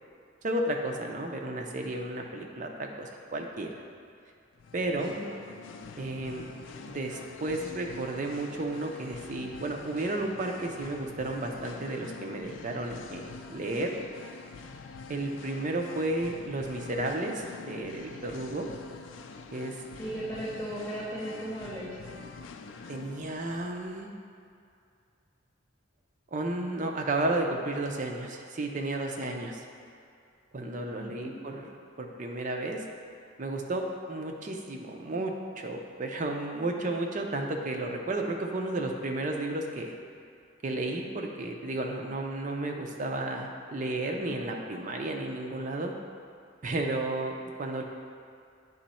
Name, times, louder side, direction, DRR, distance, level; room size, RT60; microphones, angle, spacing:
voice 1, 0.4-3.7 4.7-5.1 6.0-6.4 6.8-14.0 15.1-18.7 19.5-19.7 22.9-24.1 26.3-29.6 30.5-31.7 32.0-32.8 33.4-40.0 40.6-45.9 46.6-47.8, right 2 dB, 40° right, 2 dB, 0.6 m, -33 dB
Singing, 4.5-23.7, left 4 dB, 75° left, 0.4 m, -46 dB
voice 2, 20.0-22.2 30.9-31.6, right 1 dB, 15° left, -9 dB, 0.9 m, -37 dB
9.1 x 3.1 x 4.3 m, 2.4 s
head